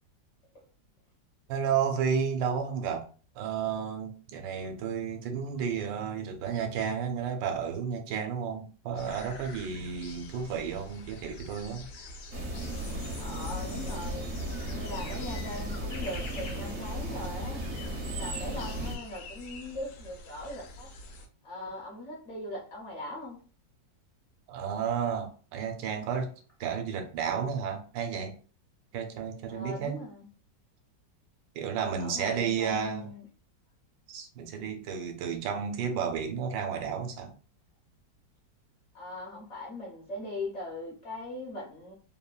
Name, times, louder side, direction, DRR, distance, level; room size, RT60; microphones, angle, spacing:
voice 1, 1.5-3.1 3.3-11.9 24.5-26.3 26.6-28.4 28.9-30.0 31.5-33.1 34.1-37.4, right 7 dB, 85° right, 1.3 m, -32 dB
sound 1, 8.9-21.3, left 2 dB, 75° left, 1.2 m, -46 dB
sound 2, 12.3-19.0, right 1 dB, 65° right, 0.8 m, -35 dB
voice 2, 13.2-14.3 14.7-17.6 18.1-20.9 21.4-23.4 29.5-30.3 32.0-33.3 38.9-41.9, left 1 dB, 55° left, 0.8 m, -40 dB
3.2 x 2.1 x 2.2 m
omnidirectional pair, 2.0 m